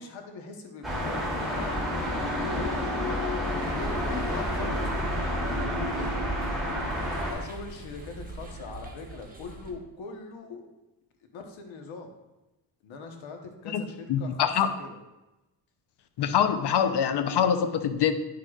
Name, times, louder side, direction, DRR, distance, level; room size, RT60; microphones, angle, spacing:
voice 1, 0.0-3.9 4.2-4.7 5.2-6.3 7.3-10.7 11.3-12.1 12.8-15.0, left 4 dB, 90° left, 4 dB, 1.2 m, -41 dB
sound 1, 0.8-7.3, equal, ahead, 2.7 m, -29 dB
sound 2, 3.6-9.7, right 3 dB, 20° right, 1.3 m, -41 dB
voice 2, 14.1-14.7 16.2-18.1, left 8 dB, 60° left, 9 dB, 0.7 m, -24 dB
9.4 x 6.7 x 2.4 m, 1.0 s
cardioid pair, 110°, 45 cm